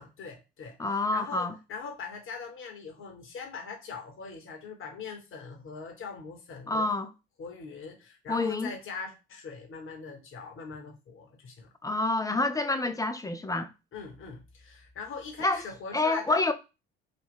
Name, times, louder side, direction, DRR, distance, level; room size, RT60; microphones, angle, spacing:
voice 1, 0.0-6.9 7.4-11.7 13.9-16.5, left 5 dB, 40° left, 1.2 m, -41 dB
voice 2, 0.8-1.5 6.7-7.1 8.3-8.7 11.8-13.7 15.4-15.6 15.9-16.5, left 2 dB, 10° left, 0.5 m, -27 dB
3.9 x 2.4 x 3.5 m
figure-of-eight pair, 50°, 32 cm